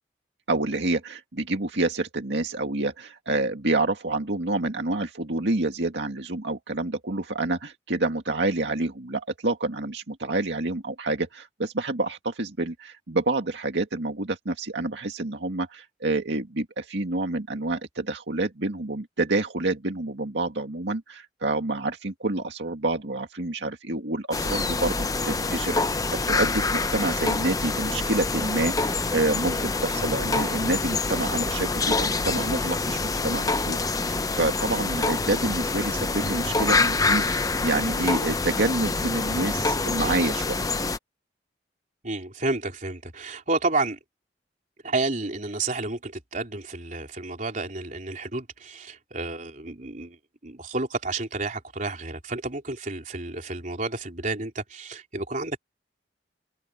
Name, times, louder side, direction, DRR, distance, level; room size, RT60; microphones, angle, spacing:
voice 1, 0.5-40.7, right 2 dB, 75° right, 2.0 m, -28 dB
sound 1, 24.3-41.0, left 3 dB, 20° left, 0.8 m, -26 dB
voice 2, 42.0-44.0 44.8-50.2 50.4-55.6, right 3 dB, 45° right, 3.8 m, -30 dB
open air
head